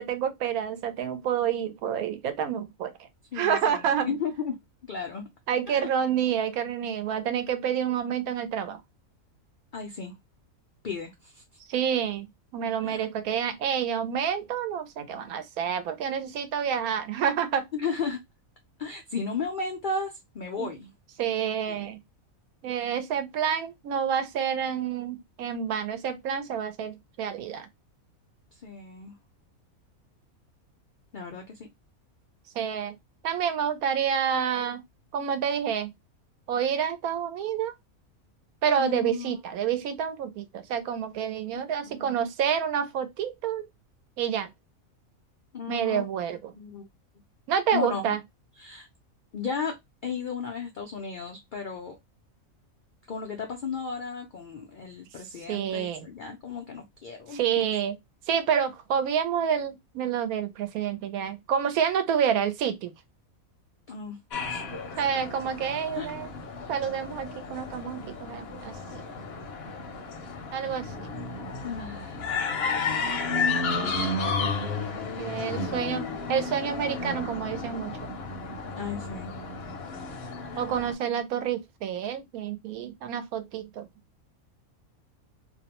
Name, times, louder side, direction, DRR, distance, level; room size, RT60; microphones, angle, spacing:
voice 1, 0.0-2.9 3.3-4.1 5.5-8.8 11.7-17.7 20.6-20.7 21.2-22.0 22.6-27.7 32.5-32.9 33.2-34.8 35.1-35.9 36.5-37.7 38.6-43.6 44.2-44.5 45.7-46.5 47.5-48.2 55.5-56.1 57.3-58.0 58.3-62.9 65.0-66.3 66.7-68.7 70.5-71.1 75.2-78.0 80.6-83.9, right 8 dB, 90° right, 1.1 m, -28 dB
voice 2, 3.3-4.6 4.8-5.2 5.7-5.9 9.7-10.2 10.8-11.4 12.8-13.1 17.7-18.2 18.8-20.9 21.7-21.8 28.5-29.1 31.1-31.7 38.8-39.4 41.5-42.2 45.5-46.0 46.5-46.9 47.7-48.2 48.6-48.9 49.3-52.0 53.1-57.7 63.9-64.2 64.5-64.6 65.9-66.1 71.6-72.3 73.8-74.2 78.7-79.3, left 5 dB, 90° left, 0.4 m, -35 dB
sound 1, 64.3-80.9, left 4 dB, 60° left, 0.7 m, -32 dB
2.6 x 2.1 x 2.8 m
omnidirectional pair, 1.5 m